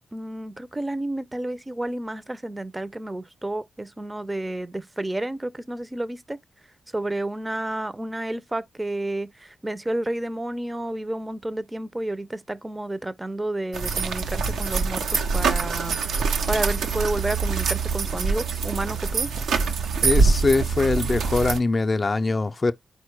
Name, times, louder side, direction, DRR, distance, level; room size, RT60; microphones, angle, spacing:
voice 1, 0.1-6.4 6.9-16.0 16.5-19.3, right 1 dB, 20° right, 0.5 m, -30 dB
sound 1, 13.7-21.6, right 4 dB, 80° right, 0.5 m, -24 dB
voice 2, 20.0-22.7, left 3 dB, 40° left, 0.4 m, -22 dB
4.2 x 2.1 x 4.5 m
supercardioid pair, 45°, 0 cm